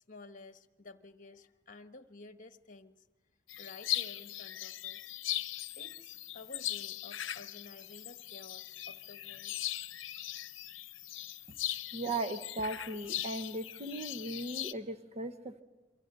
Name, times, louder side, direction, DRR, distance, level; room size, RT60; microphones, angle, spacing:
voice 1, 0.1-3.1 3.6-5.1 5.7-9.6, left 3 dB, 45° left, 8 dB, 1.2 m, -52 dB
sound 1, 3.5-14.7, left 13 dB, 70° left, 0.8 m, -39 dB
voice 2, 11.9-15.6, right 2 dB, 35° right, 10 dB, 1.0 m, -37 dB
27.5 x 24.0 x 6.8 m, 1.2 s
head